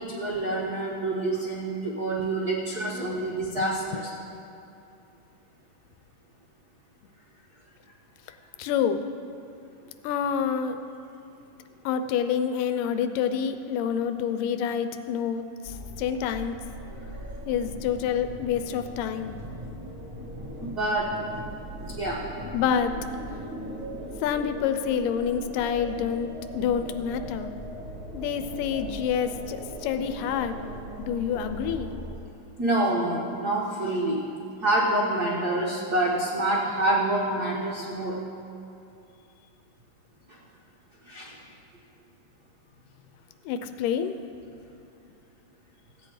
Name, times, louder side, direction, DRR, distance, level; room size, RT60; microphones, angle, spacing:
voice 1, 0.0-4.1 20.6-21.1 21.8-22.2 32.6-34.2 34.6-38.2 40.3-40.4 41.0-41.3, right 2 dB, 75° right, -5 dB, 0.8 m, -27 dB
voice 2, 8.6-9.0 10.0-10.8 11.9-16.6 17.5-19.4 22.5-23.0 24.2-26.3 26.5-27.5 28.1-30.6 31.0-31.9 43.5-44.1, left 8 dB, 80° left, 9 dB, 2.1 m, -27 dB
sound 1, 15.6-32.2, right 1 dB, 45° right, 0.8 m, -39 dB
15.5 x 8.6 x 4.9 m, 2.6 s
omnidirectional pair, 3.9 m